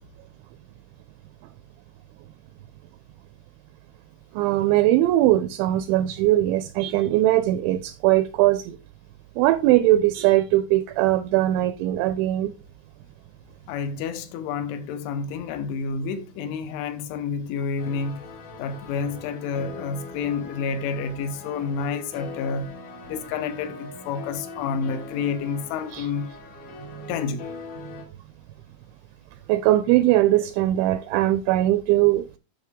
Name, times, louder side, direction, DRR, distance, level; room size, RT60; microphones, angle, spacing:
voice 1, 4.4-8.8 9.4-12.5 25.9-26.1 27.0-27.1 29.5-32.3, right 15 dB, 85° right, 2.6 m, -20 dB
voice 2, 13.7-18.2 18.6-22.7 23.1-26.3 27.1-27.5, left 5 dB, 80° left, 3.1 m, -29 dB
sound 1, 17.8-28.0, left 3 dB, 55° left, 2.3 m, -41 dB
9.2 x 6.3 x 3.5 m
omnidirectional pair, 5.7 m